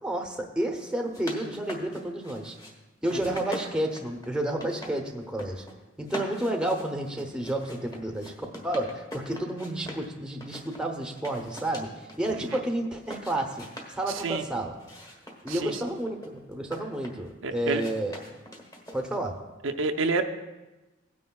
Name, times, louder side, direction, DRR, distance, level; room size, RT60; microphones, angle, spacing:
voice 1, 0.0-2.6 3.0-5.6 6.0-13.6 13.9-14.8 15.4-18.2 18.9-19.4, right 1 dB, 5° right, 2 dB, 0.8 m, -31 dB
sound 1, 0.9-2.7 3.0-4.9 5.2-5.7 6.0-10.1 10.4-12.6 13.0-14.3 14.8-17.3 17.8-19.3, equal, 15° left, 1.2 m, -42 dB
voice 2, 17.4-17.8 19.6-20.2, right 3 dB, 70° right, 4 dB, 0.6 m, -28 dB
17.0 x 9.5 x 2.3 m, 1.1 s
head